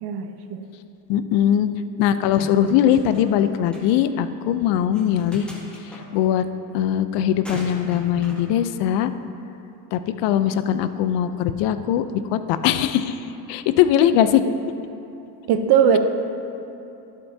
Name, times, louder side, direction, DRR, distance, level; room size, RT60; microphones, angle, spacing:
voice 1, 0.0-0.7 15.5-16.0, right 8 dB, 55° right, 8 dB, 0.7 m, -19 dB
voice 2, 1.1-1.7 2.0-5.5 5.9-6.4 6.7-9.1 9.9-12.1 12.3-14.4, left 10 dB, 60° left, 11 dB, 0.7 m, -20 dB
sound 1, 2.4-3.4 3.7-3.9 4.9-6.0 7.4-8.5, right 1 dB, ahead, 2.1 m, -38 dB
12.0 x 11.5 x 2.7 m, 2.9 s
supercardioid pair, 115°, 48 cm